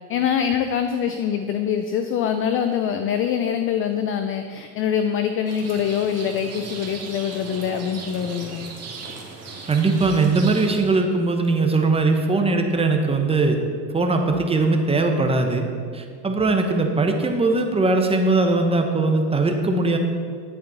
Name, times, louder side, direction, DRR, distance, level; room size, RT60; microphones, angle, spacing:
voice 1, 0.1-8.7, left 8 dB, 30° left, 7 dB, 0.3 m, -24 dB
Rain, 5.5-10.8, right 4 dB, 30° right, 1.8 m, -37 dB
voice 2, 9.7-13.6 13.9-15.7 15.9-20.0, right 3 dB, 10° right, 4 dB, 0.9 m, -20 dB
10.5 x 8.6 x 4.1 m, 2.2 s
supercardioid pair, 115°, 49 cm